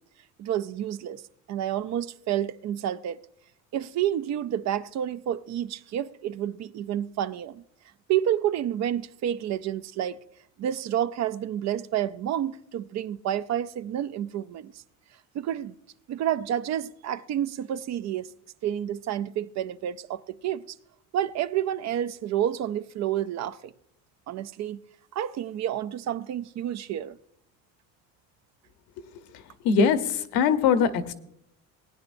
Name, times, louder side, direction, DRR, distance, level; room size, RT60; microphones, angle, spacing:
voice 1, 0.4-1.2 1.5-3.2 3.7-7.6 8.1-10.2 10.6-14.7 15.3-15.7 16.1-18.3 18.6-20.8 21.1-23.7 24.3-24.8 25.1-27.2, right 11 dB, 50° right, 0.5 m, -29 dB
voice 2, 29.6-31.1, left 6 dB, 80° left, 1.0 m, -22 dB
19.0 x 9.7 x 2.6 m
cardioid pair, 120°, 36 cm